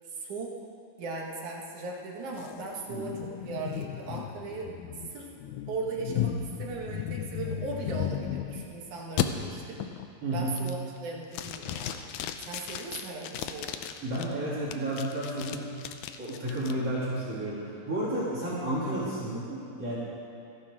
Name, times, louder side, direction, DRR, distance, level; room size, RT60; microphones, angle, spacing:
voice 1, 0.1-0.6 1.0-4.7 5.1-5.3 5.7-9.8 10.3-12.1 12.5-13.8, right 3 dB, 60° right, -2 dB, 3.0 m, -38 dB
sound 1, 2.3-8.7 9.2-9.3 9.8-10.1 10.5-11.0 11.3-14.2 14.7-16.7, left 10 dB, 80° left, 1.7 m, -35 dB
voice 2, 10.2-10.6 14.0-15.7 16.2-20.0, right 1 dB, 45° right, -9 dB, 3.9 m, -32 dB
27.5 x 11.0 x 3.7 m, 2.4 s
omnidirectional pair, 4.1 m